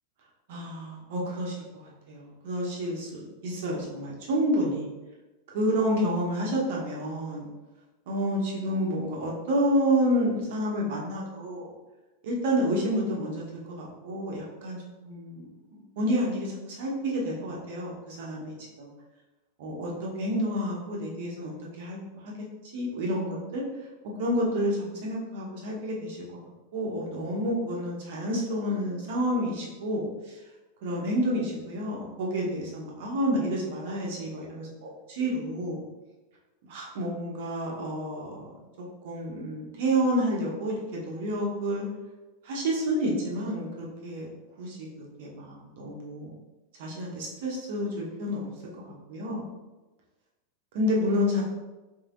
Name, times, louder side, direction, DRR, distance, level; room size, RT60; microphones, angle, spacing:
voice 1, 0.5-4.9 5.5-7.4 8.1-11.7 12.2-13.4 13.7-14.8 15.0-18.9 19.6-22.0 22.2-22.3 22.7-23.6 24.2-26.2 26.7-30.4 30.8-35.8 36.7-38.4 39.0-41.9 42.4-44.3 44.6-46.4 46.8-48.5 48.8-49.4 50.7-51.4, equal, 50° right, -3 dB, 1.0 m, -29 dB
4.5 x 3.4 x 2.6 m, 1.1 s
figure-of-eight pair, 90°, 0 cm